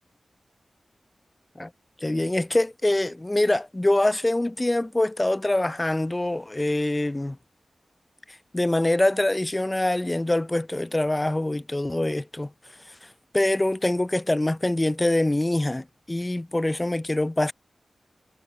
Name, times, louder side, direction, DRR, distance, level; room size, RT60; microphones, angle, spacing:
voice 1, 2.0-7.4 8.5-12.5 12.9-13.0 13.3-17.5, left 1 dB, 25° left, 0.5 m, -24 dB
cardioid pair, 50°, 0 cm